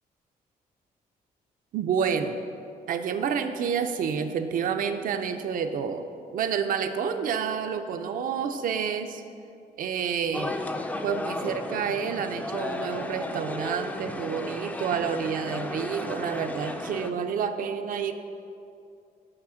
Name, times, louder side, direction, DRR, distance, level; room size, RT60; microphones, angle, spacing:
voice 1, 1.7-2.4 2.9-6.0 6.3-9.2 9.8-10.6 11.0-18.1, right 7 dB, 70° right, 8 dB, 0.5 m, -29 dB
sound 1, 10.3-17.1, left 2 dB, 10° left, 0.3 m, -34 dB
6.0 x 4.9 x 6.3 m, 2.6 s
cardioid pair, 130°, 15 cm